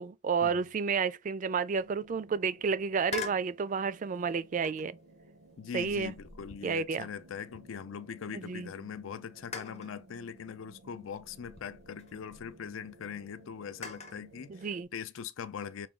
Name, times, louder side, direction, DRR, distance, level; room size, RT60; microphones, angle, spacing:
voice 1, 0.0-5.0 5.7-6.1 6.6-7.1 8.3-8.7 14.5-14.9, right 5 dB, 40° right, 0.3 m, -31 dB
sound 1, 1.7-14.8, right 1 dB, 85° right, 0.7 m, -56 dB
sound 2, 3.1-3.5 4.6-5.0 5.7-8.0 8.4-8.5 9.5-10.0 11.1-12.5 13.8-14.2, left 5 dB, 35° left, 0.6 m, -44 dB
voice 2, 5.6-15.9, left 7 dB, 80° left, 0.4 m, -41 dB
5.8 x 2.2 x 3.6 m
head